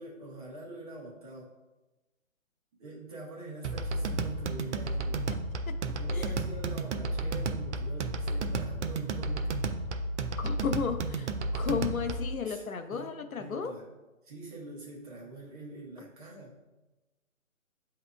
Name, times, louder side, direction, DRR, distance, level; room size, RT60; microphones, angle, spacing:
voice 1, 0.0-1.5 2.8-5.3 5.9-9.6 12.5-12.6 12.9-13.9 14.2-16.6, right 2 dB, 25° right, -3 dB, 1.0 m, -45 dB
sound 1, 3.6-12.4, right 2 dB, 60° right, 0.5 m, -32 dB
voice 2, 10.4-13.7, left 6 dB, 90° left, 8 dB, 0.6 m, -34 dB
7.9 x 2.8 x 2.2 m, 1.1 s
figure-of-eight pair, 140°, 41 cm